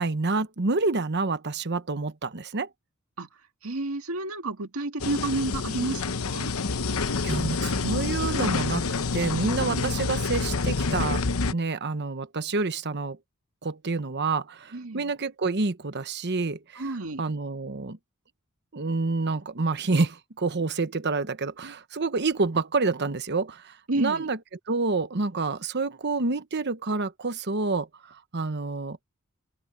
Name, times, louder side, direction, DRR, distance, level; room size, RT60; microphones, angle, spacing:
voice 1, 0.0-2.7 6.8-11.2 11.5-13.2 13.6-16.8 17.2-18.0 18.7-24.4 24.7-29.0, right 3 dB, 55° right, 1.1 m, -28 dB
voice 2, 3.6-6.5 9.7-10.2 14.7-15.1 16.8-17.2 23.9-24.3, right 2 dB, 85° right, 2.0 m, -31 dB
sound 1, 5.0-11.5, left 4 dB, 85° left, 0.9 m, -27 dB
open air
head